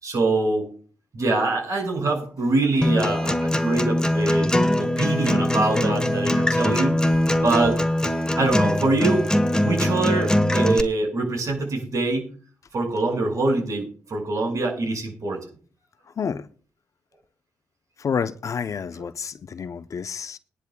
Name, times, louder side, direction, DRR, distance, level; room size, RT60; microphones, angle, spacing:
voice 1, 0.0-0.7 1.1-4.5 4.8-7.0 7.4-7.8 8.4-9.2 9.6-12.3 12.7-15.4 18.9-19.0, right 2 dB, 55° right, 2 dB, 5.7 m, -24 dB
Acoustic guitar, 2.8-10.8, left 1 dB, 10° left, 1.2 m, -22 dB
voice 2, 18.0-20.4, left 6 dB, 50° left, 13 dB, 0.7 m, -29 dB
21.0 x 10.5 x 2.3 m, 0.42 s
hypercardioid pair, 45°, 7 cm